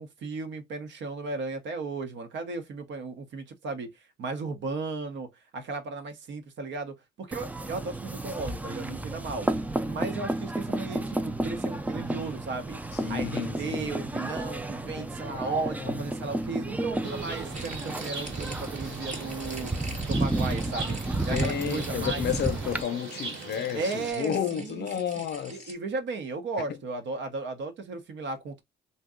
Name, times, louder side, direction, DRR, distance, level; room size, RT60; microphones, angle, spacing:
voice 1, 0.0-3.9 4.2-9.5 9.9-12.8 13.1-19.7 20.1-21.0 21.3-22.3 23.7-24.9 25.2-25.3 25.5-28.6, right 3 dB, 65° right, 0.8 m, -35 dB
sound 1, 7.3-22.8, right 2 dB, 10° right, 0.3 m, -32 dB
voice 2, 12.9-13.9 15.0-15.5 15.8-16.0 21.3-25.7, left 9 dB, 60° left, 0.5 m, -32 dB
sound 2, 17.0-24.1, right 4 dB, 85° right, 1.3 m, -40 dB
sound 3, 17.5-25.7, right 2 dB, 35° right, 1.0 m, -45 dB
2.7 x 2.2 x 3.6 m
cardioid pair, 90°, 20 cm